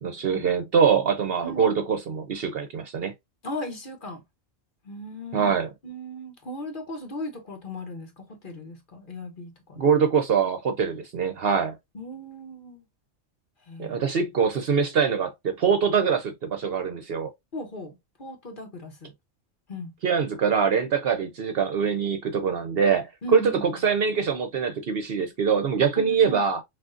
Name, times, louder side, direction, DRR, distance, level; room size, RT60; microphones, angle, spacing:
voice 1, 0.0-3.1 5.3-5.7 9.8-11.7 13.8-17.3 20.0-26.6, right 6 dB, 60° right, 0.8 m, -24 dB
voice 2, 1.4-1.8 3.4-4.2 4.8-5.5 5.8-9.8 11.9-12.8 13.7-14.0 17.5-19.1 19.7-19.9 23.2-23.5 26.0-26.4, left 1 dB, 45° left, 1.1 m, -37 dB
6.0 x 2.5 x 2.5 m
omnidirectional pair, 1.3 m